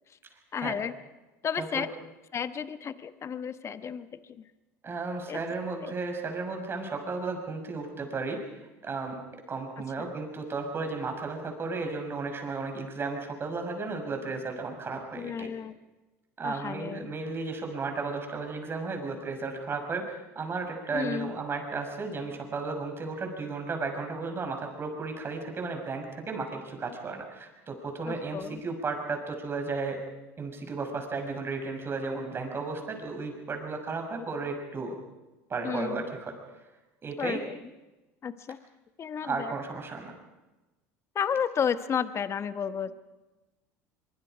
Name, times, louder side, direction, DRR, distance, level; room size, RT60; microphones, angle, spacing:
voice 1, 0.5-0.9 1.4-1.9 2.3-4.5 5.3-5.4 5.8-5.9 10.0-10.1 15.1-15.7 16.4-17.1 20.9-21.3 28.1-28.6 35.6-36.1 37.2-37.6 38.2-38.6 39.0-39.5 41.1-42.9, left 7 dB, 35° left, 12 dB, 1.2 m, -32 dB
voice 2, 4.8-8.4 8.8-9.2 9.5-15.5 16.4-30.0 30.4-35.0 35.5-36.3 37.0-37.4 39.2-40.1, right 4 dB, 30° right, 4 dB, 5.9 m, -34 dB
23.5 x 23.5 x 5.1 m, 1.1 s
hypercardioid pair, 80°, 8 cm